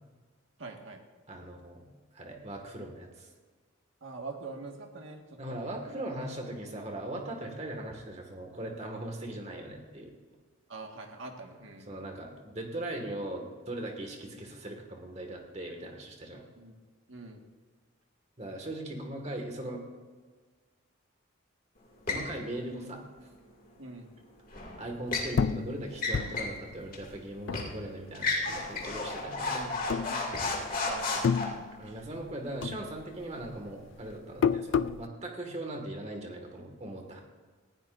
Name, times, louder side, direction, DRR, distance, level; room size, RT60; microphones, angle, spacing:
voice 1, 0.6-1.0 4.0-5.6 10.7-11.9 16.6-16.7 17.1-17.4 23.8-24.1 29.5-32.0, right 3 dB, 65° right, 2 dB, 1.8 m, -44 dB
voice 2, 1.3-1.9 2.1-3.3 5.4-10.1 11.9-16.4 18.4-19.8 22.1-23.0 24.8-29.7 31.7-37.2, right 1 dB, 30° right, 2 dB, 1.9 m, -39 dB
sound 1, 22.1-22.3 24.5-25.3 25.9-26.6 26.9-27.0 27.5-27.7 28.1-31.4, left 3 dB, 40° left, 2.4 m, -32 dB
sound 2, 25.4-28.2 28.6-29.4 29.8-30.7 31.0-32.3 32.6-35.1, left 6 dB, 60° left, 0.3 m, -31 dB
19.5 x 15.0 x 2.6 m, 1.4 s
head